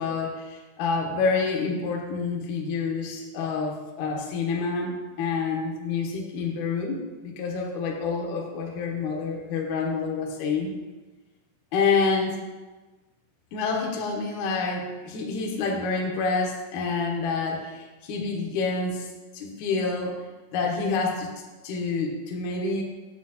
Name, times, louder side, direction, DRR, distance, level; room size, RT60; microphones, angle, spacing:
voice 1, 0.0-10.7 11.7-12.4 13.5-20.1 20.5-21.3 21.6-22.8, left 4 dB, 70° left, -1 dB, 2.1 m, -28 dB
9.7 x 6.8 x 2.9 m, 1.2 s
omnidirectional pair, 4.2 m